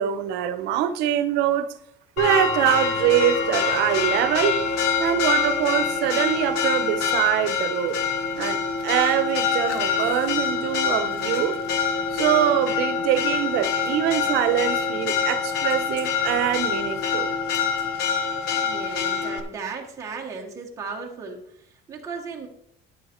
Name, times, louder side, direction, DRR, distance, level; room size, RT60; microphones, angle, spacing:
voice 1, 0.0-1.7 2.2-4.6 5.0-8.0 8.3-11.6 12.1-17.3, right 11 dB, 75° right, 0.8 m, -24 dB
Church bell, 2.2-19.4, left 6 dB, 70° left, 1.2 m, -25 dB
voice 2, 18.5-22.5, right 5 dB, 15° right, 1.2 m, -36 dB
10.0 x 8.0 x 4.4 m
cardioid pair, 180°, 18 cm